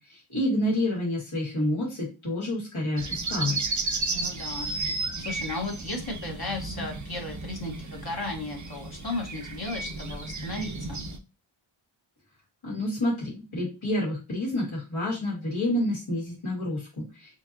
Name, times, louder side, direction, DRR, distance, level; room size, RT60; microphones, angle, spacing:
voice 1, 0.1-3.6 12.6-17.4, left 1 dB, 70° left, -6 dB, 2.1 m, -29 dB
sound 1, 3.0-11.2, right 3 dB, 35° right, 0.6 m, -33 dB
voice 2, 4.1-4.7 5.2-11.0, left 2 dB, 45° left, 0 dB, 1.3 m, -35 dB
4.4 x 2.8 x 2.7 m, 0.29 s
wide cardioid pair, 40°, 50 cm